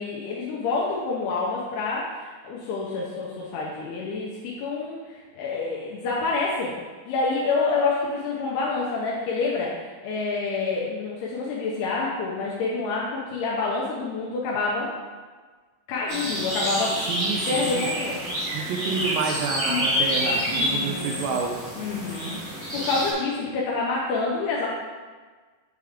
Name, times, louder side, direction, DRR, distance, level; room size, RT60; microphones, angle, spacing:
voice 1, 0.0-6.8 7.1-14.9 15.9-17.0 17.5-18.4 19.7-19.8 20.4-21.2 21.8-24.7, left 4 dB, 85° left, -5 dB, 2.8 m, -28 dB
sound 1, 16.1-23.1, equal, 30° right, 1.2 m, -28 dB
voice 2, 17.1-17.9 18.5-21.6, right 5 dB, 80° right, 0 dB, 2.1 m, -29 dB
6.6 x 3.5 x 4.9 m, 1.4 s
omnidirectional pair, 4.5 m